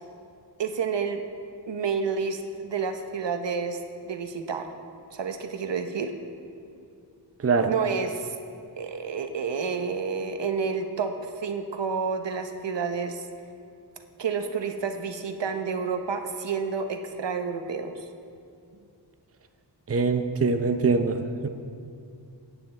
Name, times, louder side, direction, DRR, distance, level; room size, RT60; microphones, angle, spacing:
voice 1, 0.6-1.2 1.7-3.8 4.0-4.7 5.1-6.1 7.7-8.3 8.8-13.2 14.2-18.0, right 5 dB, 75° right, 6 dB, 0.8 m, -29 dB
voice 2, 7.4-7.7 19.9-21.5, right 4 dB, 35° right, 7 dB, 0.6 m, -23 dB
17.5 x 9.1 x 3.3 m, 2.4 s
wide cardioid pair, 65°, 43 cm